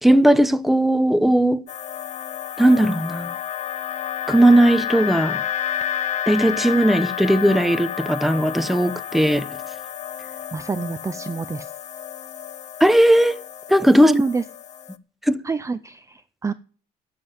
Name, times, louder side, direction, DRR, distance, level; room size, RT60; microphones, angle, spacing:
voice 1, 0.0-1.6 2.6-3.3 4.3-5.4 6.3-9.5 12.8-13.4 13.7-14.2 15.3-15.4, right 1 dB, ahead, 0.9 m, -17 dB
sound 1, 1.7-15.0, left 10 dB, 45° left, 0.7 m, -31 dB
voice 2, 10.5-11.7 14.0-14.4 15.4-16.5, right 4 dB, 15° right, 0.6 m, -26 dB
12.0 x 7.7 x 9.0 m
cardioid pair, 110°, 17 cm